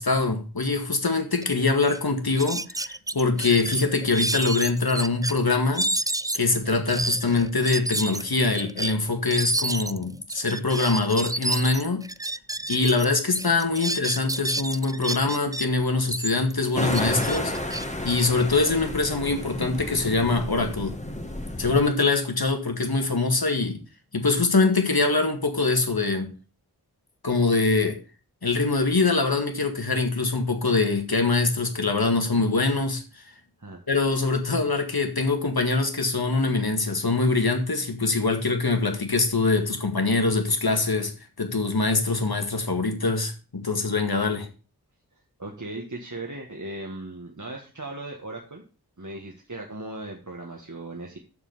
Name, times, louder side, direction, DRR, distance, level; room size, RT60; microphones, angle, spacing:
voice 1, 0.0-5.9 6.3-12.1 12.7-17.5 18.0-20.9 21.6-23.8 24.1-26.3 27.2-28.0 28.4-33.2 33.9-41.1 41.4-44.5, left 3 dB, 70° left, 1.9 m, -23 dB
sound 1, 1.4-1.5 1.8-2.0 2.4-5.3 5.7-13.1 13.3-15.6 16.0-18.9, right 2 dB, 10° right, 0.4 m, -30 dB
sound 2, 16.8-21.8, left 1 dB, 20° left, 1.6 m, -31 dB
voice 2, 45.4-48.6 49.0-51.2, right 2 dB, 50° right, 1.7 m, -37 dB
7.0 x 6.8 x 6.7 m
wide cardioid pair, 45°, 38 cm